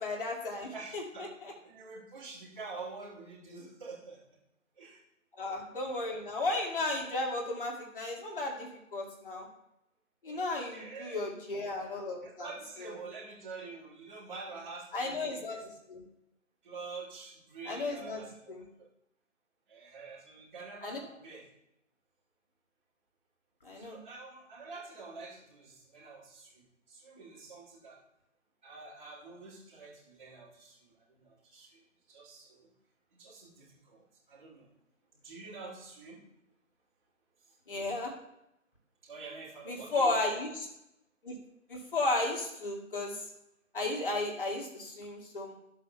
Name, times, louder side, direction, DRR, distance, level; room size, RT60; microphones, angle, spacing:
voice 1, 0.0-1.5 5.4-9.5 10.2-12.5 12.8-12.9 14.9-16.0 17.7-18.6 20.8-21.0 23.6-24.0 37.7-38.1 39.7-40.7 41.2-41.4 41.7-43.2 43.7-45.5, left 2 dB, 40° left, 0 dB, 2.1 m, -34 dB
voice 2, 0.7-1.3 1.6-4.2 4.8-5.0 10.2-11.2 12.2-15.6 16.6-18.9 19.7-21.4 23.8-28.0 28.6-31.8 32.1-32.7 33.1-34.7 35.1-36.2 37.5-37.6 39.0-40.2, right 4 dB, 35° right, -7 dB, 2.7 m, -47 dB
15.5 x 7.5 x 2.2 m, 0.85 s
figure-of-eight pair, 150°, 41 cm